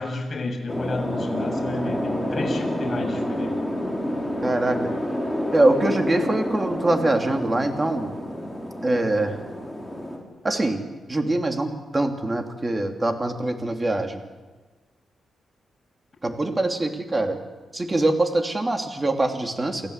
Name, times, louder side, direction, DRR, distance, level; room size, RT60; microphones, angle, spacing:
voice 1, 0.0-3.5, left 2 dB, 40° left, 1 dB, 7.1 m, -31 dB
sound 1, 0.7-10.2, equal, 5° right, 5.4 m, -28 dB
voice 2, 4.4-4.8 5.5-8.1 8.8-9.4 10.4-10.8 11.1-14.2 16.2-17.4 17.7-19.8, right 2 dB, 25° right, 4 dB, 3.1 m, -23 dB
28.5 x 17.0 x 8.3 m, 1.3 s
cardioid pair, 100°, 0 cm